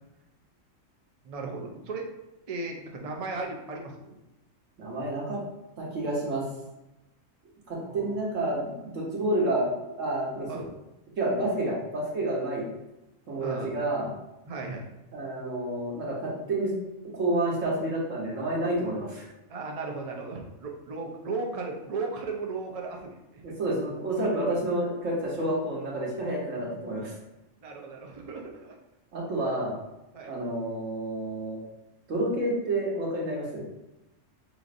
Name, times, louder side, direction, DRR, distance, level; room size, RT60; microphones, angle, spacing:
voice 1, 1.2-2.1 2.5-4.2 7.7-8.2 10.5-10.7 13.4-13.7 14.4-14.9 19.5-23.5 27.6-28.8 30.1-30.4, right 3 dB, 45° right, 1 dB, 0.5 m, -36 dB
voice 2, 4.8-5.4 5.8-6.4 7.7-9.7 10.0-10.6 11.2-12.7 13.3-14.1 15.1-16.7 17.1-19.3 23.4-27.1 29.1-29.8 30.2-31.6 32.1-33.6, right 1 dB, 75° right, -3 dB, 1.5 m, -29 dB
5.1 x 3.1 x 2.5 m, 0.94 s
omnidirectional pair, 1.4 m